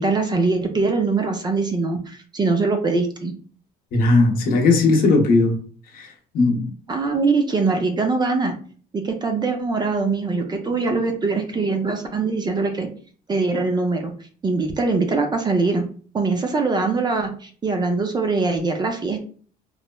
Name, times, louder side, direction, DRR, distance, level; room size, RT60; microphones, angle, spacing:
voice 1, 0.0-3.3 6.9-8.6 8.9-12.9 13.3-14.1 14.4-15.8 16.1-19.3, right 3 dB, 25° right, 4 dB, 0.5 m, -22 dB
voice 2, 3.9-5.6 5.9-6.7, left 3 dB, 60° left, 2 dB, 0.7 m, -18 dB
3.1 x 2.0 x 2.2 m, 0.43 s
cardioid pair, 110°, 17 cm